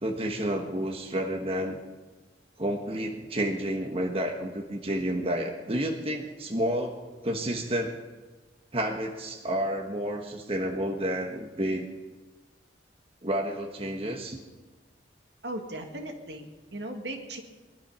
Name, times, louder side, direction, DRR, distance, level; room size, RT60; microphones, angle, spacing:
voice 1, 0.0-1.8 2.6-8.0 8.7-11.9 13.2-14.4, right 1 dB, 35° right, 2 dB, 1.3 m, -30 dB
voice 2, 15.4-17.4, right 1 dB, 75° right, 4 dB, 2.0 m, -37 dB
21.5 x 12.0 x 5.6 m, 1.2 s
head